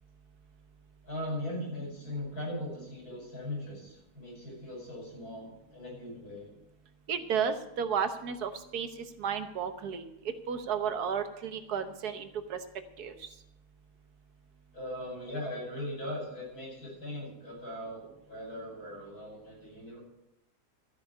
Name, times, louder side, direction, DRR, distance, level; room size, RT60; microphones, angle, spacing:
voice 1, 1.0-6.5 14.7-20.0, left 1 dB, 75° left, -2 dB, 6.2 m, -39 dB
voice 2, 7.1-8.9 9.2-10.1 10.5-12.6 13.0-13.1, right 7 dB, 90° right, 9 dB, 1.6 m, -32 dB
13.5 x 5.9 x 9.7 m, 0.88 s
omnidirectional pair, 1.6 m